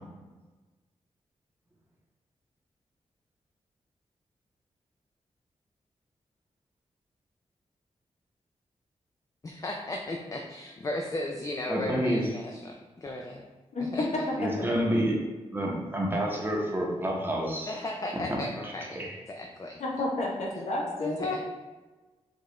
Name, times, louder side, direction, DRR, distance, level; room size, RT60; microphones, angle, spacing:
voice 1, 9.4-13.5 13.8-14.2 17.7-19.0 19.3-19.8 21.0-21.4, left 1 dB, 30° left, 1 dB, 0.4 m, -35 dB
voice 2, 11.7-12.2 14.4-15.2 15.5-17.7 18.9-19.1, equal, 20° right, -2 dB, 0.8 m, -28 dB
voice 3, 13.7-14.1 14.4-14.7 19.8-21.4, left 2 dB, 80° left, -1 dB, 0.8 m, -31 dB
4.7 x 2.4 x 3.1 m, 1.2 s
wide cardioid pair, 85°, 12 cm